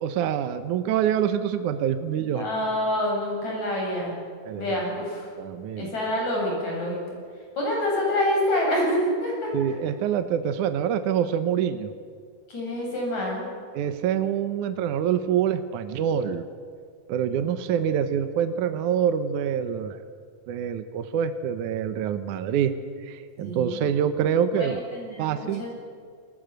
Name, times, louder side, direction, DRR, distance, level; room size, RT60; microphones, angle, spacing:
voice 1, 0.0-2.5 4.4-4.8 5.4-5.9 9.5-11.9 13.7-16.5 17.1-20.0 20.5-22.7 23.0-24.8 25.2-25.6, right 9 dB, 75° right, 10 dB, 2.4 m, -26 dB
voice 2, 2.2-4.1 4.5-5.3 5.8-7.0 7.6-9.5 12.5-13.5 17.4-17.6 23.4-23.9 24.6-25.8, left 1 dB, 60° left, -2 dB, 9.5 m, -27 dB
28.5 x 20.5 x 7.9 m, 2.1 s
omnidirectional pair, 3.7 m